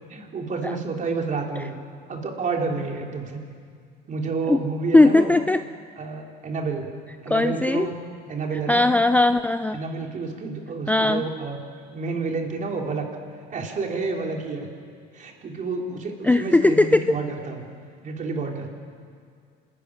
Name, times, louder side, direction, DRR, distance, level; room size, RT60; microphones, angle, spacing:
voice 1, 0.1-1.8 2.1-3.4 4.1-5.3 6.0-6.9 7.2-8.0 8.2-8.9 9.7-11.6 11.9-13.1 13.5-14.7 15.1-17.7 18.0-18.7, right 4 dB, 40° right, 1 dB, 3.6 m, -29 dB
voice 2, 4.9-5.6 7.3-7.9 8.7-9.8 10.9-11.2 16.2-17.0, left 2 dB, 10° left, 10 dB, 0.5 m, -18 dB
26.0 x 14.0 x 10.0 m, 2.1 s
supercardioid pair, 95°, 20 cm